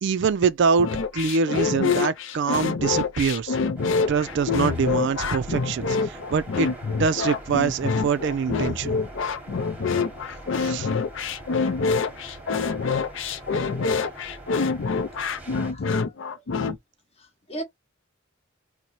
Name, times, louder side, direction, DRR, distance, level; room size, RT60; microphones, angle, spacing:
voice 1, 0.0-0.9 1.1-3.6 4.1-6.7 7.0-9.0 10.6-10.9, right 5 dB, 60° right, 0.4 m, -24 dB
sound 1, 0.8-16.7, left 5 dB, 60° left, 0.5 m, -26 dB
sound 2, 3.8-15.7, right 1 dB, 10° right, 1.0 m, -43 dB
voice 2, 15.6-16.7 17.2-17.6, right 2 dB, 30° left, 0.9 m, -39 dB
3.0 x 2.1 x 3.9 m
head